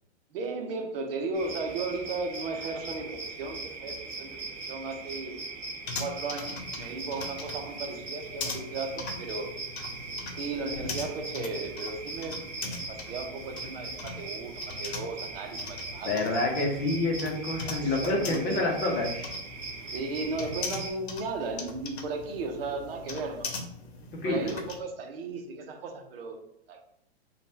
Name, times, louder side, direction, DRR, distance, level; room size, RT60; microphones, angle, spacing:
voice 1, 0.3-5.4 6.0-9.5 10.4-16.1 17.6-18.8 19.9-23.5 24.2-26.4 26.7-26.8, right 3 dB, 65° right, 0.7 m, -35 dB
sound 1, 1.3-20.9, right 3 dB, 25° right, 1.0 m, -40 dB
sound 2, 5.8-24.8, left 4 dB, 80° left, 0.9 m, -41 dB
voice 2, 16.0-19.1 24.2-24.6, left 2 dB, 30° left, 0.7 m, -28 dB
2.9 x 2.3 x 3.3 m
hypercardioid pair, 130°, 32 cm